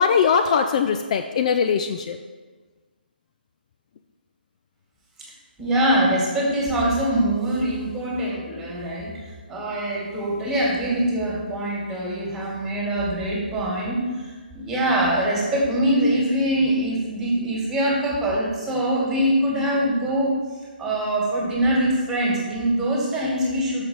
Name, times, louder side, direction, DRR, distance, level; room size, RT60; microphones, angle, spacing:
voice 1, 0.0-2.2, left 6 dB, 40° left, 7 dB, 0.4 m, -21 dB
voice 2, 5.6-20.3 20.8-23.8, right 1 dB, 10° right, -4 dB, 2.0 m, -23 dB
6.3 x 5.8 x 5.6 m, 1.4 s
figure-of-eight pair, 145°, 6 cm